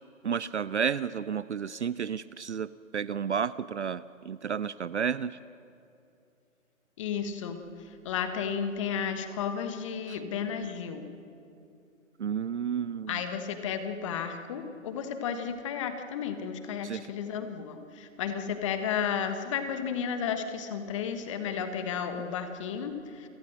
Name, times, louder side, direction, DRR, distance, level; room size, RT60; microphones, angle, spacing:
voice 1, 0.2-5.4 10.1-10.2 12.2-13.2 16.8-17.1, right 7 dB, 60° right, 18 dB, 0.6 m, -32 dB
voice 2, 7.0-11.1 13.1-23.3, left 7 dB, 25° left, 8 dB, 1.3 m, -33 dB
28.5 x 18.0 x 6.6 m, 2.7 s
figure-of-eight pair, 145°, 41 cm